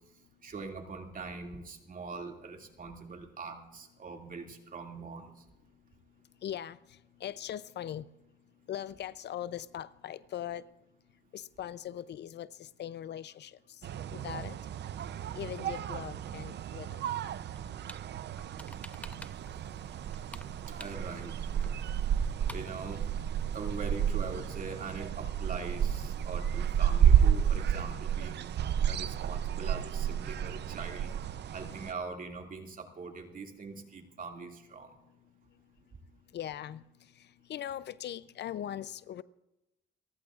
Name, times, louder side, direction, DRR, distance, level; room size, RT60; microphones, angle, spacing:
voice 1, 0.4-5.3 20.8-21.3 22.5-23.1 23.5-28.5 28.9-31.1 31.5-34.9, right 4 dB, 45° right, 2.4 m, -42 dB
voice 2, 6.4-6.8 7.2-8.1 8.7-10.6 11.3-13.6 14.1-14.6 15.4-16.9 30.1-30.2 36.3-36.8 37.5-39.2, left 10 dB, 60° left, 0.5 m, -40 dB
sound 1, 13.8-31.9, right 9 dB, 60° right, 0.6 m, -31 dB
sound 2, 17.6-18.0 18.4-19.5 19.8-21.3 21.6-21.7 21.9-22.0 22.2-22.8, left 1 dB, 5° left, 0.8 m, -48 dB
28.5 x 15.0 x 2.5 m
cardioid pair, 90°, 20 cm